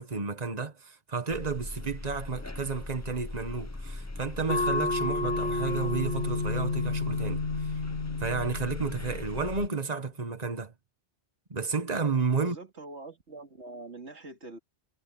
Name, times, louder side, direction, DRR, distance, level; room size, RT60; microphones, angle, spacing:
voice 1, 0.0-7.8 8.2-10.7 11.5-12.6, right 4 dB, 35° right, 1.7 m, -32 dB
sound 1, 1.3-9.7, left 2 dB, 15° left, 0.8 m, -40 dB
sound 2, 4.5-9.6, left 3 dB, 75° left, 1.9 m, -31 dB
voice 2, 12.4-14.6, right 2 dB, 90° right, 2.9 m, -44 dB
omnidirectional pair, 1.1 m